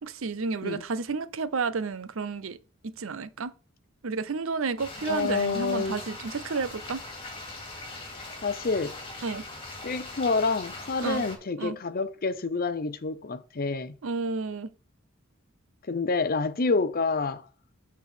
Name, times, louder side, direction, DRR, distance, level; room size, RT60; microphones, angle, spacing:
voice 1, 0.0-2.6 2.8-3.5 4.0-7.0 9.2-9.4 11.0-11.2 11.6-11.8 14.0-14.7, right 4 dB, 75° right, 0.6 m, -31 dB
sound 1, 4.8-11.4, left 2 dB, 25° left, 2.5 m, -41 dB
voice 2, 5.1-6.0 8.4-9.0 9.8-14.0 15.9-17.4, left 4 dB, 45° left, 0.6 m, -28 dB
7.2 x 4.2 x 6.1 m
head